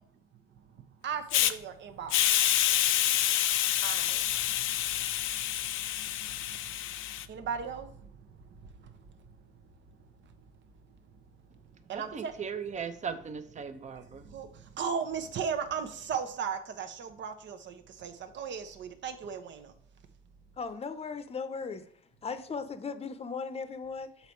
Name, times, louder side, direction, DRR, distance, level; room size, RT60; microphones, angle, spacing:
voice 1, 0.5-2.7 3.8-9.2 9.4-9.6 9.9-10.0 10.2-10.3 11.9-12.4 14.0-19.7, right 6 dB, 65° right, 0.9 m, -38 dB
Hiss, 1.3-1.5 2.1-7.2, left 13 dB, 85° left, 0.4 m, -28 dB
voice 2, 11.9-14.2, right 6 dB, 35° right, 0.7 m, -38 dB
voice 3, 20.6-21.8 22.2-24.3, left 5 dB, 30° left, 0.7 m, -37 dB
6.9 x 4.1 x 4.5 m
cardioid pair, 90°, 20 cm